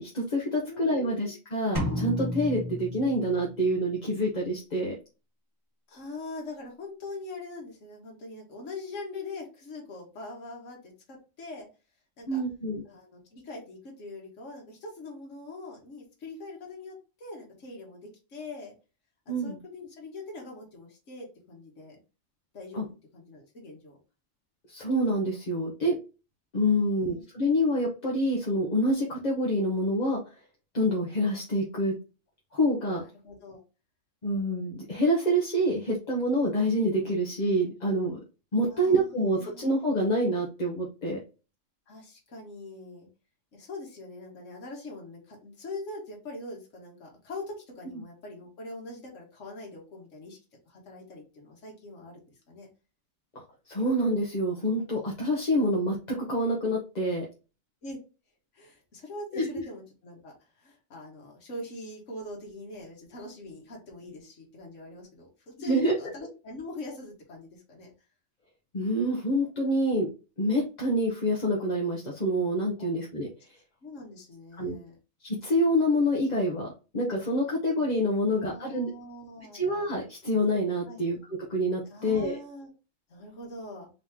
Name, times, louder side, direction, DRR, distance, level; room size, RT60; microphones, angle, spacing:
voice 1, 0.0-4.9 12.3-12.8 19.3-19.6 22.7-22.8 24.7-26.0 26.5-30.3 30.7-31.9 32.5-33.0 34.2-38.2 38.5-41.2 47.9-48.0 53.3-57.2 59.3-59.5 65.6-65.9 68.7-70.1 70.4-73.3 74.6-74.8 75.2-78.9 79.5-82.4, equal, 35° left, -2 dB, 0.9 m, -27 dB
voice 2, 0.6-1.3 5.9-11.7 12.2-12.4 12.8-18.7 19.2-22.0 22.5-24.0 26.7-27.2 33.0-33.6 38.7-39.7 41.9-43.1 43.5-50.4 50.6-52.2 52.5-52.7 57.8-58.0 58.5-67.9 72.8-72.9 73.8-75.0 78.2-79.6 80.9-81.0 81.9-82.7 83.1-83.9, left 2 dB, 65° left, -1 dB, 1.7 m, -43 dB
sound 1, 1.8-3.7, equal, 15° right, 1.0 m, -32 dB
3.8 x 3.0 x 3.6 m, 0.31 s
omnidirectional pair, 1.4 m